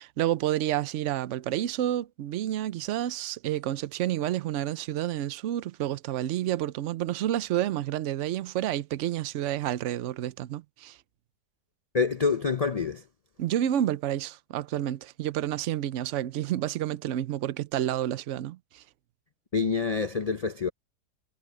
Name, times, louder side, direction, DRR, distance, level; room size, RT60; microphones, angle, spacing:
voice 1, 0.0-11.0 13.4-18.8, right 12 dB, 60° right, 0.8 m, -29 dB
voice 2, 11.9-13.0 19.5-20.7, left 5 dB, 80° left, 0.3 m, -26 dB
omnidirectional pair, 1.7 m